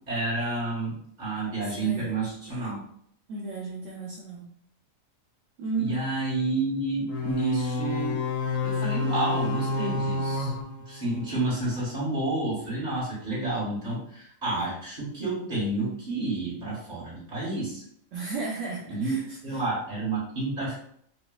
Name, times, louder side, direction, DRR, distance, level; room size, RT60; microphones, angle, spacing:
voice 1, 0.1-2.8 5.7-8.2 8.6-10.5 10.9-17.8 18.9-19.2 19.4-20.7, right 2 dB, 30° right, -7 dB, 1.6 m, -30 dB
voice 2, 1.6-2.1 2.5-2.8 3.3-4.5 5.6-6.0 18.1-19.6, right 4 dB, 70° right, -4 dB, 0.9 m, -34 dB
sound 1, 7.1-11.6, left 3 dB, 75° left, 1.0 m, -29 dB
4.1 x 2.4 x 2.2 m, 0.66 s
omnidirectional pair, 1.4 m